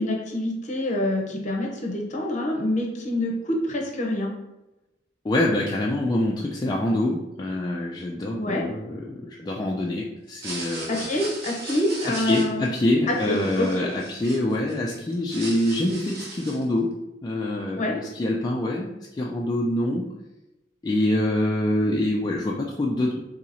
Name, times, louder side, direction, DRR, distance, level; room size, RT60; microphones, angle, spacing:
voice 1, 0.0-4.3 8.4-8.6 10.9-12.7 13.1-13.9 17.8-17.9, left 1 dB, 40° left, 0 dB, 0.7 m, -26 dB
voice 2, 5.2-11.1 12.1-16.9 17.2-20.1 20.8-23.2, left 1 dB, 20° left, -2 dB, 0.3 m, -25 dB
sound 1, 10.3-14.7 15.1-16.7, right 2 dB, 55° right, 1.1 m, -38 dB
2.8 x 2.8 x 4.0 m, 0.99 s
head